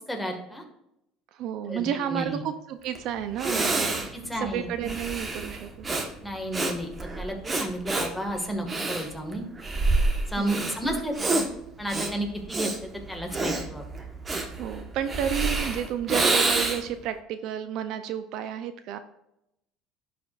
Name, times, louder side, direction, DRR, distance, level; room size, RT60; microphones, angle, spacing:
voice 1, 0.1-0.6 1.7-2.4 3.9-4.7 6.2-9.4 10.3-11.5 11.8-13.9, equal, 5° left, 2 dB, 1.8 m, -32 dB
voice 2, 1.3-3.9 4.3-5.7 10.4-10.8 14.6-19.0, right 9 dB, 65° right, 10 dB, 0.5 m, -31 dB
Breathing, 2.9-3.0 3.4-17.0, right 2 dB, 25° right, 1.3 m, -28 dB
11.0 x 5.1 x 2.5 m, 0.82 s
supercardioid pair, 95°, 0 cm